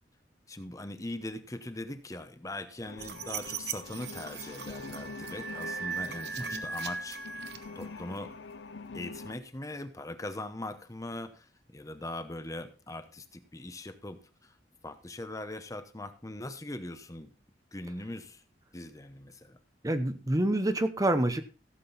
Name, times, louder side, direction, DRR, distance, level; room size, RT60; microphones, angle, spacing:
voice 1, 0.5-7.2 7.7-8.3 8.9-14.6 14.8-17.3 17.7-18.4 18.7-19.6, left 1 dB, 20° left, 10 dB, 0.9 m, -41 dB
sound 1, 2.8-9.4, left 4 dB, 85° left, 0.7 m, -45 dB
sound 2, 3.0-8.2, right 5 dB, 65° right, 1.2 m, -39 dB
voice 2, 19.8-21.4, right 1 dB, 20° right, 10 dB, 0.8 m, -27 dB
15.5 x 7.6 x 4.1 m, 0.34 s
head